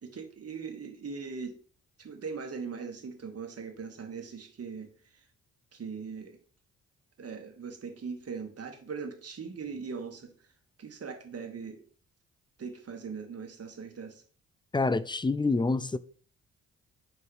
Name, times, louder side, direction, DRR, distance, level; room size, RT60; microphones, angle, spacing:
voice 1, 0.0-1.6 2.0-4.9 5.7-6.4 7.2-10.3 10.8-11.8 12.6-14.2, right 5 dB, 40° right, 2.1 m, -40 dB
voice 2, 14.7-16.0, left 3 dB, 15° left, 0.5 m, -27 dB
9.7 x 4.6 x 3.5 m
figure-of-eight pair, 40°, 37 cm